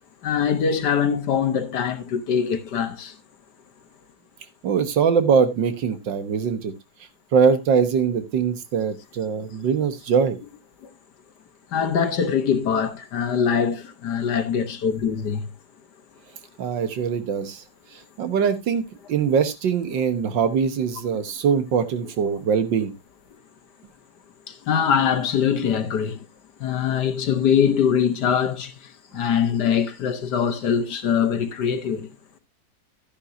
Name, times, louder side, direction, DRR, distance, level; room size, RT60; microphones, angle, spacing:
voice 1, 0.2-3.1 11.7-15.5 19.9-20.0 24.5-26.2 26.6-28.7 29.1-32.1, left 7 dB, 65° left, 1.7 m, -23 dB
voice 2, 4.6-6.7 7.3-10.4 16.6-17.6 17.9-22.9, right 6 dB, 75° right, 1.9 m, -22 dB
12.0 x 10.0 x 2.7 m
omnidirectional pair, 2.0 m